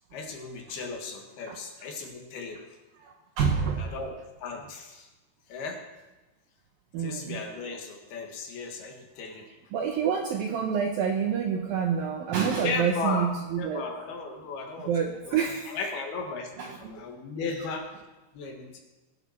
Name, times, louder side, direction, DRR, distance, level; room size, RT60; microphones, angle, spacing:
voice 1, 0.1-2.6 3.8-4.1 4.4-5.1 5.5-5.8 7.0-9.5 12.6-13.3 13.6-14.9 15.3-17.9 18.3-18.8, left 4 dB, 65° left, 2 dB, 3.4 m, -36 dB
voice 2, 3.0-3.9 6.9-7.4 9.7-13.8 14.9-15.8 16.6-17.0, right 7 dB, 75° right, 3 dB, 2.2 m, -28 dB
21.0 x 9.0 x 5.8 m, 1.1 s
omnidirectional pair, 5.2 m